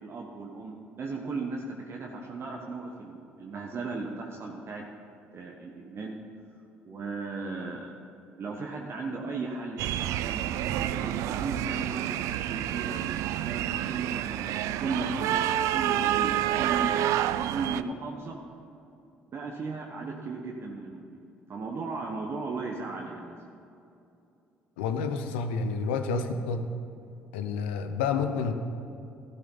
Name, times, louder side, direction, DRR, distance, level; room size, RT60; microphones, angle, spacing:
voice 1, 0.0-4.8 5.3-6.1 6.8-7.9 8.4-12.2 12.5-14.5 14.8-18.4 19.3-23.4, right 4 dB, 45° right, 0 dB, 1.3 m, -36 dB
sound 1, 9.8-17.8, right 12 dB, 65° right, 0.4 m, -29 dB
voice 2, 24.8-26.6 27.3-28.5, left 5 dB, 80° left, 8 dB, 0.8 m, -29 dB
14.0 x 12.0 x 4.1 m, 2.7 s
hypercardioid pair, 55°, 6 cm